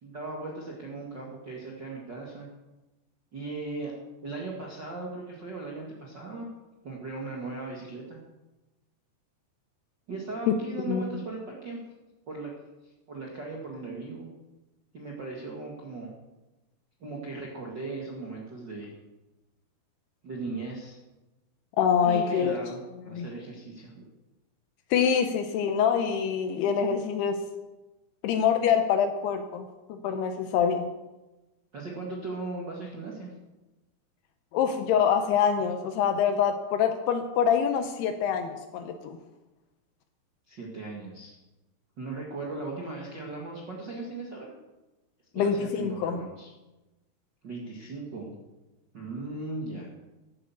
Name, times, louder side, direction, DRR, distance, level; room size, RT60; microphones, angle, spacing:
voice 1, 0.0-2.5 3.3-3.9 4.2-6.5 6.8-8.2 10.1-11.8 12.3-12.5 12.8-14.3 14.9-16.1 17.0-18.9 20.2-21.0 22.0-22.8 23.0-24.0 31.7-33.3 40.5-41.3 42.0-44.5 45.3-46.5 47.4-48.3 48.9-49.9, right 3 dB, 65° right, -3 dB, 1.1 m, -38 dB
voice 2, 21.8-22.6 23.1-23.3 24.9-27.4 28.2-30.9 34.5-39.2 45.3-46.2, left 7 dB, 75° left, 8 dB, 2.6 m, -25 dB
14.0 x 8.9 x 7.1 m, 1.1 s
omnidirectional pair, 5.1 m